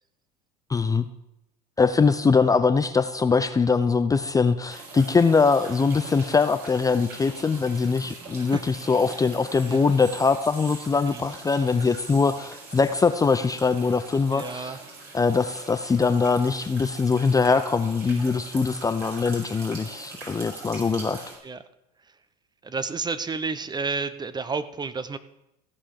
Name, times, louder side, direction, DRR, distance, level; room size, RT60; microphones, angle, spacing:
voice 1, 0.7-1.1 1.8-14.8 15.1-21.2, left 4 dB, 15° left, 10 dB, 0.6 m, -22 dB
sound 1, 4.7-21.4, right 3 dB, 55° right, 4.6 m, -42 dB
voice 2, 8.3-8.8 9.1-9.2 9.7-9.8 11.1-11.3 14.3-14.8 21.4-21.6 22.6-25.2, right 4 dB, 20° right, 13 dB, 0.8 m, -31 dB
15.5 x 5.7 x 6.6 m, 0.85 s
hypercardioid pair, 80°, 21 cm